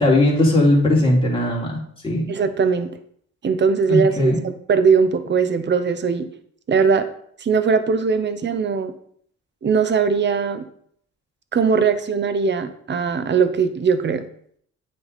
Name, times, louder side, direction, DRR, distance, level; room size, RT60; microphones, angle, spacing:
voice 1, 0.0-1.8 2.0-2.2 3.9-4.4, left 1 dB, 15° left, -4 dB, 2.8 m, -18 dB
voice 2, 2.3-2.9 3.4-6.3 6.7-7.1 7.4-8.9 9.6-10.6 11.5-14.3, right 5 dB, 35° right, 10 dB, 0.7 m, -20 dB
8.9 x 3.5 x 4.1 m, 0.65 s
cardioid pair, 90°, 30 cm